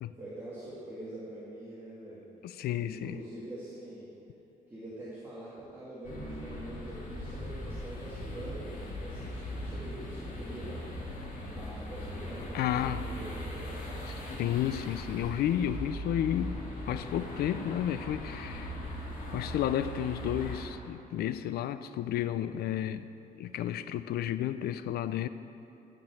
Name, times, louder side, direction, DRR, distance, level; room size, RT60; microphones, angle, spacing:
voice 1, 0.2-2.3 2.8-4.1 4.7-10.9 11.4-14.1, right 1 dB, 15° right, -10 dB, 2.1 m, -44 dB
voice 2, 2.4-3.2 12.5-13.1 14.4-18.7 19.3-23.1 23.4-25.3, left 11 dB, 85° left, 13 dB, 0.4 m, -32 dB
sound 1, 6.0-20.6, equal, 60° left, 2.2 m, -39 dB
12.0 x 5.2 x 6.8 m, 2.7 s
cardioid pair, 140°, 16 cm